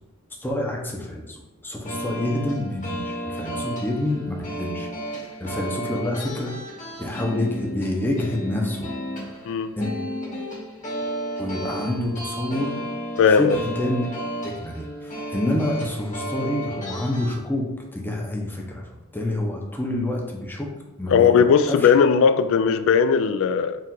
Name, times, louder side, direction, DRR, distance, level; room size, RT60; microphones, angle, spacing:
voice 1, 0.4-4.9 5.1-6.5 7.0-8.9 9.3-9.4 9.8-9.9 11.4-12.8 13.2-14.0 14.4-18.8 19.1-20.7 21.0-21.9, left 1 dB, 10° left, -1 dB, 0.6 m, -28 dB
sound 1, 1.8-17.3, equal, 35° left, 1.1 m, -33 dB
voice 2, 9.4-9.8 13.2-13.6 21.1-23.8, left 6 dB, 65° left, 10 dB, 0.3 m, -18 dB
4.5 x 2.4 x 3.7 m, 0.98 s
head